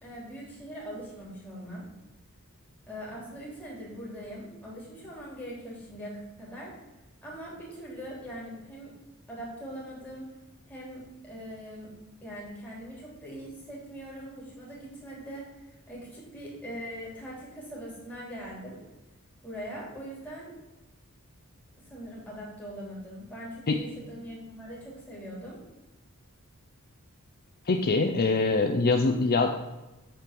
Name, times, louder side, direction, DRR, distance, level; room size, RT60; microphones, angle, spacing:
voice 1, 0.0-1.9 2.9-6.7 7.2-8.9 9.3-10.3 10.7-11.9 12.2-15.5 15.9-18.8 19.4-20.5 21.9-25.6, equal, 10° left, -6 dB, 3.4 m, -41 dB
voice 2, 27.7-29.6, left 3 dB, 45° left, 6 dB, 0.5 m, -24 dB
8.7 x 4.6 x 6.8 m, 1.1 s
head